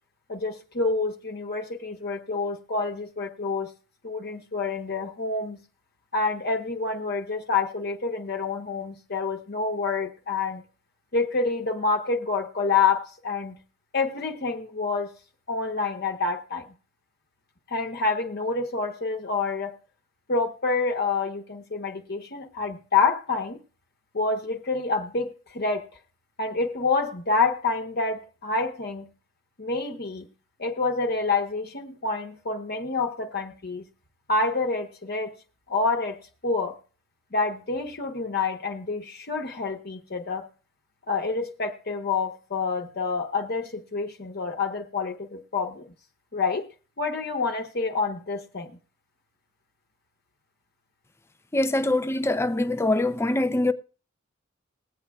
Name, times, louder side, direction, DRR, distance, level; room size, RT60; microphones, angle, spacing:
voice 1, 0.3-3.7 4.0-5.6 6.1-10.6 11.1-13.6 13.9-15.1 15.5-16.7 17.7-19.8 20.3-23.6 24.1-25.9 26.4-29.1 29.6-30.3 30.6-33.8 34.3-35.3 35.7-36.8 37.3-40.4 41.1-45.9 46.3-46.7 47.0-48.8, left 4 dB, 55° left, 1.1 m, -27 dB
voice 2, 51.5-53.7, left 2 dB, 15° left, 0.5 m, -23 dB
21.0 x 8.2 x 2.4 m
head